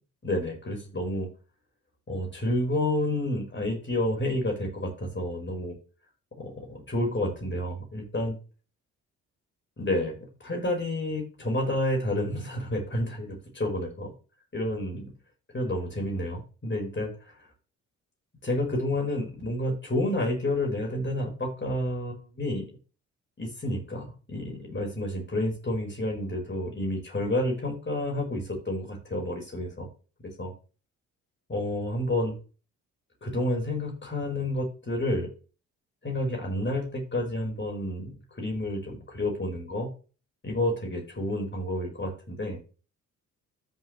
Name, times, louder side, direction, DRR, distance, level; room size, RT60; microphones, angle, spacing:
voice 1, 0.2-1.3 2.1-5.8 6.4-8.4 9.8-14.1 14.5-15.1 15.5-17.4 18.4-22.7 23.4-29.9 30.4-30.5 31.5-32.4 33.2-35.3 36.0-39.9 40.4-42.6, left 1 dB, 30° left, 1 dB, 4.7 m, -30 dB
14.0 x 6.1 x 3.2 m, 0.35 s
hypercardioid pair, 45°, 39 cm